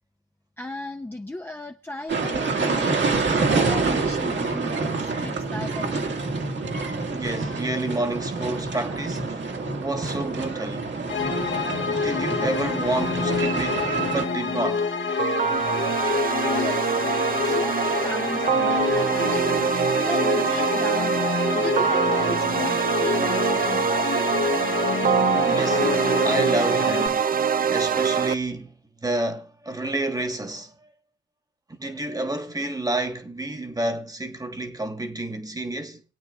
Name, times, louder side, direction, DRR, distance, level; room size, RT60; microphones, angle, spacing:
voice 1, 0.6-3.0 3.3-6.0 16.4-17.1 17.4-19.5 20.0-21.2 21.5-24.1, left 2 dB, 10° left, 0.7 m, -36 dB
sound 1, 2.1-14.2, right 4 dB, 65° right, 2.0 m, -27 dB
voice 2, 7.0-9.5 9.8-11.0 11.9-14.9 25.4-25.9 26.2-27.3 27.7-30.7 31.7-36.0, right 2 dB, 20° right, 1.4 m, -29 dB
sound 2, 11.1-27.1, left 5 dB, 70° left, 1.7 m, -27 dB
sound 3, 15.2-28.3, right 7 dB, 45° right, 0.5 m, -24 dB
25.5 x 8.8 x 2.4 m
wide cardioid pair, 105°, 20 cm